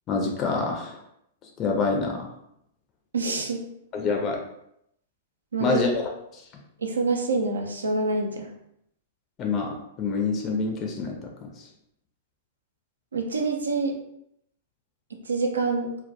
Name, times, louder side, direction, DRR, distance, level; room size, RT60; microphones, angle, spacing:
voice 1, 0.1-1.0 1.6-2.3 3.9-4.4 5.6-6.0 6.3-6.4 9.4-11.5, left 4 dB, 30° left, 1 dB, 0.4 m, -26 dB
voice 2, 3.1-3.6 5.5-5.8 6.8-8.5 13.1-14.0 15.3-15.9, right 3 dB, 80° right, 2 dB, 0.4 m, -26 dB
2.2 x 2.2 x 2.7 m, 0.75 s
figure-of-eight pair, 105°, 0 cm